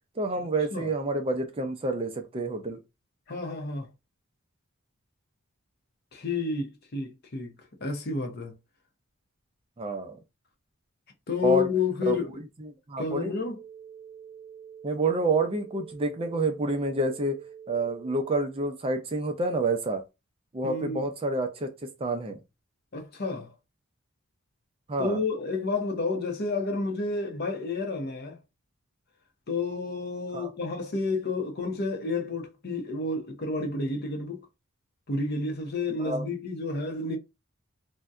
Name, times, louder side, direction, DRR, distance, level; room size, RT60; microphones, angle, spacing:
voice 1, 0.2-2.8 9.8-10.2 11.4-11.7 12.1-12.2 12.6-13.3 14.8-17.4 17.7-20.0 20.5-21.7 22.0-22.4 24.9-25.2 30.3-30.5 36.0-36.2, right 2 dB, 25° right, 0.5 m, -28 dB
voice 2, 3.3-3.9 6.1-7.5 7.8-8.5 11.3-12.3 13.0-13.6 20.6-21.0 22.9-23.5 25.0-28.4 29.5-34.5 35.1-37.2, left 3 dB, 50° left, 0.7 m, -30 dB
sound 1, 13.4-18.4, right 8 dB, 80° right, 1.0 m, -47 dB
2.6 x 2.2 x 3.4 m
head